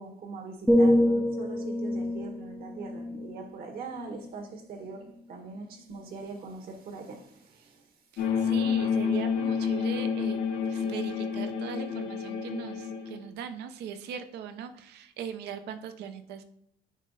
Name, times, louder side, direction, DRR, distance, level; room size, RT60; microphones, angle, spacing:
voice 1, 0.0-7.8, right 4 dB, 65° right, 4 dB, 1.6 m, -42 dB
sound 1, 0.7-4.6 5.1-5.4, left 1 dB, ahead, 0.4 m, -27 dB
voice 2, 8.1-10.4 10.7-16.4, right 7 dB, 80° right, 9 dB, 0.8 m, -39 dB
sound 2, 8.2-13.2, left 6 dB, 80° left, 1.0 m, -29 dB
9.1 x 3.2 x 4.0 m, 0.71 s
cardioid pair, 110°, 17 cm